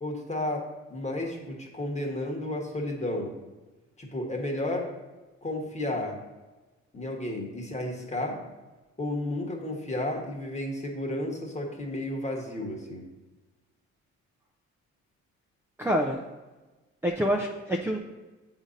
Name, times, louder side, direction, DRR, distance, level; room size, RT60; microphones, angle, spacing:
voice 1, 0.0-3.4 4.0-4.9 5.4-6.2 6.9-8.4 9.0-13.0, left 1 dB, 25° left, 1 dB, 1.3 m, -32 dB
voice 2, 15.8-16.2 17.0-18.0, equal, 10° right, 0 dB, 0.5 m, -26 dB
7.8 x 2.8 x 5.0 m, 1.2 s
cardioid pair, 90°, 30 cm